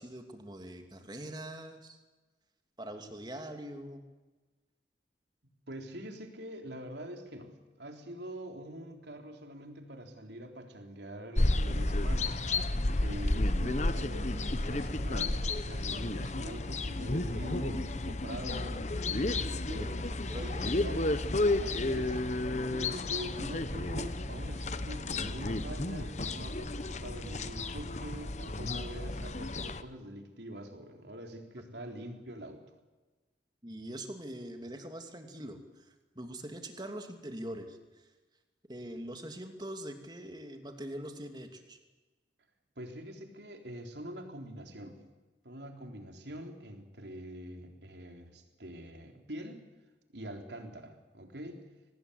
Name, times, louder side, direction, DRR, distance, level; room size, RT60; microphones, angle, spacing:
voice 1, 0.0-2.0 2.8-4.0 19.8-20.6 31.5-31.6 33.6-38.0 38.7-41.8, right 1 dB, 25° right, 5 dB, 2.7 m, -43 dB
voice 2, 5.7-12.3 13.0-19.9 20.3-22.2 22.7-32.6 42.8-45.0 45.4-49.6 50.1-51.6, right 1 dB, 70° right, 4 dB, 3.8 m, -44 dB
sound 1, 11.4-29.8, left 2 dB, 40° left, 1.0 m, -32 dB
24.5 x 19.0 x 8.2 m, 1.2 s
head